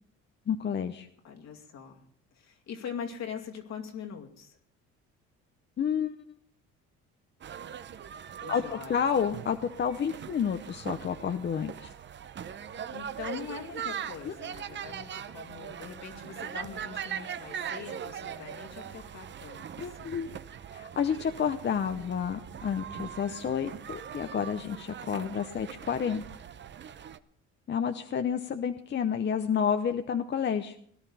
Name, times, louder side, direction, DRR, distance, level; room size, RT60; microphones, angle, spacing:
voice 1, 0.5-1.1 5.8-6.2 8.5-11.9 14.3-14.4 19.8-20.3 20.7-26.2 27.7-30.8, left 7 dB, 40° left, 8 dB, 0.8 m, -30 dB
voice 2, 1.2-2.0 2.3-4.6 8.4-9.3 10.1-10.2 12.9-20.4, left 7 dB, 65° left, 2 dB, 2.3 m, -42 dB
sound 1, 7.4-27.2, right 8 dB, 40° right, 0.7 m, -41 dB
17.5 x 11.5 x 4.2 m, 0.63 s
cardioid pair, 100°, 29 cm